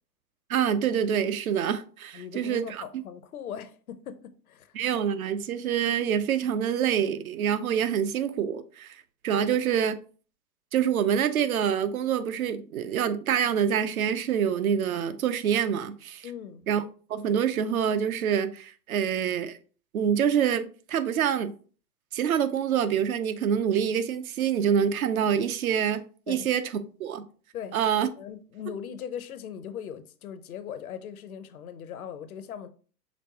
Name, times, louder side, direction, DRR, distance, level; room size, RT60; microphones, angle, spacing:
voice 1, 0.5-2.6 4.8-8.9 9.2-10.0 10.7-16.3 16.7-16.8 17.1-19.6 19.9-21.5 22.1-26.6 27.0-27.3 27.7-28.1, right 8 dB, 60° right, 0.6 m, -26 dB
voice 2, 2.1-4.8 9.3-9.9 16.2-16.6 26.3-26.5 27.5-27.8 28.2-32.7, left 8 dB, 60° left, 0.6 m, -39 dB
5.2 x 3.4 x 2.8 m
figure-of-eight pair, 105°, 50 cm